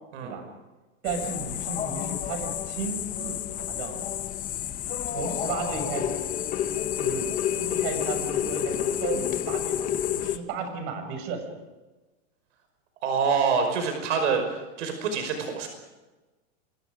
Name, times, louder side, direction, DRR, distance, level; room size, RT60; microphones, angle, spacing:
sound 1, 1.0-10.4, left 10 dB, 20° left, 1.0 m, -29 dB
voice 1, 1.0-3.4 3.7-4.1 5.1-6.2 7.0-9.9 10.1-11.4, right 5 dB, 45° right, 6 dB, 6.9 m, -34 dB
voice 2, 13.0-15.7, right 5 dB, 75° right, 5 dB, 5.5 m, -26 dB
29.5 x 25.0 x 5.1 m, 1.2 s
supercardioid pair, 155°, 36 cm